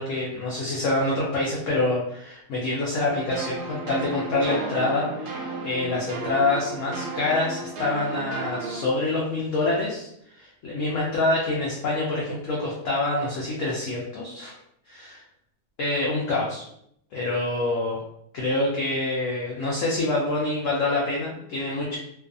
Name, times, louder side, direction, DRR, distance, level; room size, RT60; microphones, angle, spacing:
voice 1, 0.0-10.1 10.3-14.5 14.9-15.2 15.8-16.6 17.1-18.0 18.3-22.0, left 2 dB, 65° left, -4 dB, 0.8 m, -26 dB
sound 1, 3.0-8.8, right 2 dB, 85° right, 1.2 m, -34 dB
2.6 x 2.4 x 2.5 m, 0.73 s
omnidirectional pair, 1.7 m